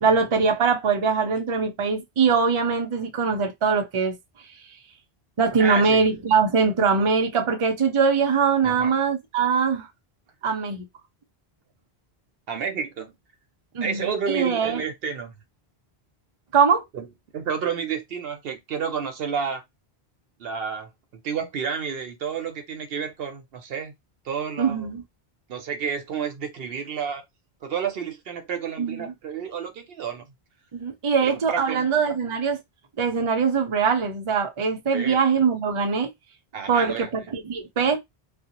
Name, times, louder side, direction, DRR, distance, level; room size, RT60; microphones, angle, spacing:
voice 1, 0.0-4.2 5.4-9.9 10.4-10.9 13.7-14.8 16.5-16.8 24.6-25.0 28.8-29.1 30.7-32.6 33.0-36.1 36.7-38.0, right 5 dB, 40° right, 0.5 m, -22 dB
voice 2, 5.6-6.0 7.0-7.1 8.6-9.0 12.5-13.1 13.8-15.3 16.9-17.1 17.3-19.6 20.4-23.9 24.2-24.9 25.5-27.2 27.6-30.2 31.2-31.9 34.9-35.2 36.5-37.1, right 6 dB, 70° right, 0.8 m, -30 dB
2.5 x 2.0 x 2.8 m
omnidirectional pair, 1.1 m